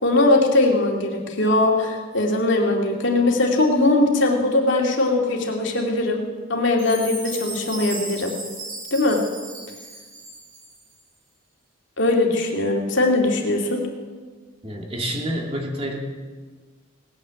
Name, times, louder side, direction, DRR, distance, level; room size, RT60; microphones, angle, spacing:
voice 1, 0.0-6.2 6.5-8.3 8.9-9.2 12.0-13.8, left 2 dB, 60° left, 0 dB, 2.6 m, -20 dB
Chime, 6.8-11.0, right 3 dB, 45° right, 5.0 m, -36 dB
voice 2, 14.6-16.0, right 1 dB, 30° right, 1 dB, 2.4 m, -28 dB
19.0 x 9.5 x 7.7 m, 1.4 s
head